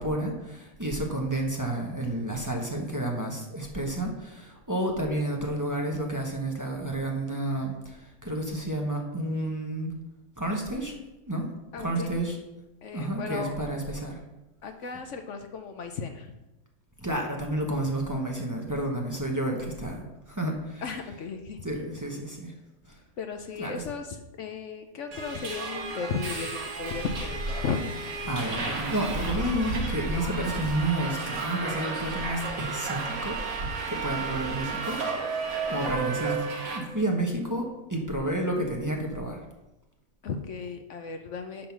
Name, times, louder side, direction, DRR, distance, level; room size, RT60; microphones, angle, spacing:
voice 1, 0.0-9.9 10.4-10.9 11.3-11.4 11.8-12.4 12.9-14.2 17.0-20.8 21.6-22.5 22.9-23.0 23.6-23.8 28.3-33.4 33.9-35.4 35.7-36.5 36.7-39.4, right 1 dB, 15° right, 0 dB, 0.9 m, -30 dB
voice 2, 11.7-12.1 12.8-13.5 14.6-16.3 20.8-21.6 23.2-26.5 26.8-28.0 40.2-41.7, left 5 dB, 60° left, 6 dB, 0.8 m, -35 dB
Subway metro underground, 25.1-36.8, right 3 dB, 60° right, 1.7 m, -32 dB
10.5 x 3.8 x 5.9 m, 0.98 s
omnidirectional pair, 1.7 m